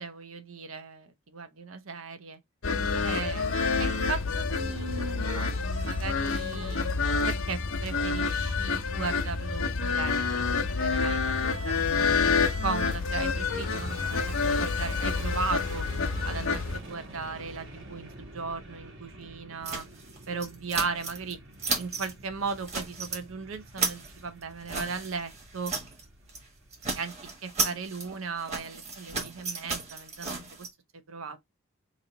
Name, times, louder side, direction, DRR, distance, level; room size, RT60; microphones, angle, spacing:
voice 1, 0.0-2.4 3.0-6.9 7.2-11.8 12.2-12.3 12.6-15.9 16.2-19.8 20.3-21.4 21.7-25.7 26.9-27.1 27.4-30.7 31.1-31.4, right 4 dB, 75° right, 0.8 m, -37 dB
sound 1, 2.6-16.8, left 4 dB, 70° left, 0.8 m, -28 dB
Fixed-wing aircraft airplane, 11.6-28.1, right 1 dB, 60° right, 1.4 m, -48 dB
sound 2, 19.6-21.3 21.6-22.1 22.5-23.2 23.5-26.0 26.3-26.5 26.7-30.7, right 4 dB, 30° right, 1.3 m, -34 dB
3.1 x 2.8 x 3.9 m
head